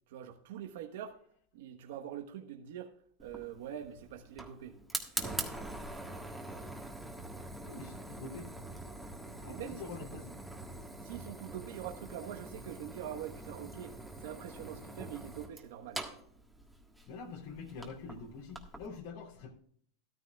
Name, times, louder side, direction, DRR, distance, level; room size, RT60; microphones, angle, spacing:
voice 1, 0.1-1.2 1.5-4.8 5.1-5.4 9.5-9.8 11.0-16.0, right 10 dB, 75° right, 1.1 m, -44 dB
Fire, 3.2-18.9, right 1 dB, ahead, 1.5 m, -44 dB
voice 2, 7.6-8.5 9.3-10.3 17.1-19.5, left 4 dB, 65° left, 3.1 m, -45 dB
13.5 x 12.5 x 2.3 m
supercardioid pair, 140°, 0 cm